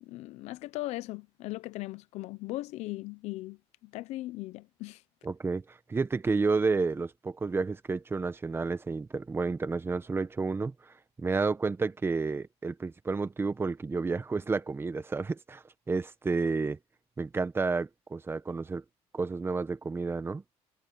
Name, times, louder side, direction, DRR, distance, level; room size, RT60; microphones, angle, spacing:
voice 1, 0.0-5.0, left 18 dB, 85° left, 0.7 m, -38 dB
voice 2, 5.2-16.8 17.2-18.8 19.1-20.4, right 4 dB, 20° right, 1.3 m, -31 dB
cardioid pair, 120°, 11 cm